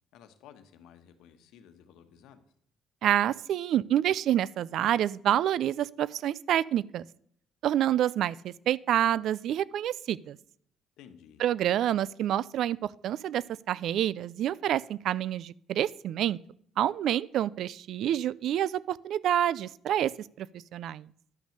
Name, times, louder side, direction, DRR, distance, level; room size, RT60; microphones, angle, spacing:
voice 1, 0.1-2.4 11.0-11.4, left 8 dB, 75° left, 8 dB, 1.3 m, -54 dB
voice 2, 3.0-7.0 7.6-10.4 11.4-16.4 16.8-20.1 20.4-20.5 20.7-21.1, right 11 dB, 55° right, 22 dB, 0.3 m, -28 dB
11.5 x 6.2 x 6.6 m, 0.65 s
cardioid pair, 160°, 0 cm